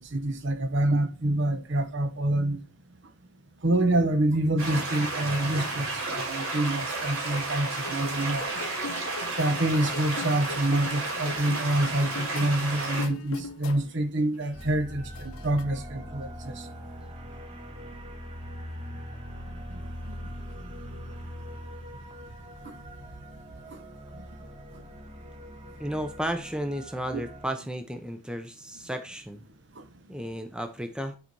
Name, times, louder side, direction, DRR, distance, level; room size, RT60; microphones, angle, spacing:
voice 1, 0.0-2.6 3.6-8.5 9.4-16.6 19.7-20.1 20.6-20.7 22.6-22.8 23.7-23.8 27.1-27.2 29.8-29.9, right 1 dB, 55° right, 0.9 m, -27 dB
sound 1, 4.6-13.1, right 3 dB, 75° right, 3.6 m, -32 dB
sound 2, 7.8-14.0 14.3-15.6, left 4 dB, 75° left, 0.8 m, -41 dB
sound 3, 14.5-27.5, equal, 25° right, 1.1 m, -42 dB
voice 2, 25.8-29.4 30.1-31.2, equal, 5° right, 0.6 m, -33 dB
10.0 x 4.2 x 4.6 m
head